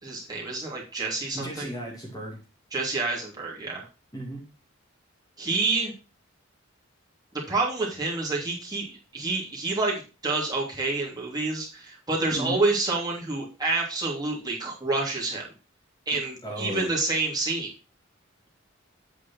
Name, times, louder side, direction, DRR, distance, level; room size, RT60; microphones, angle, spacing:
voice 1, 0.0-1.7 2.7-3.8 5.4-5.9 7.5-15.4 16.1-17.7, right 3 dB, 20° right, -4 dB, 3.0 m, -28 dB
voice 2, 1.3-2.4 4.1-4.4 12.3-12.6 16.4-16.9, right 1 dB, 20° left, -1 dB, 2.2 m, -34 dB
8.3 x 4.9 x 6.0 m, 0.33 s
head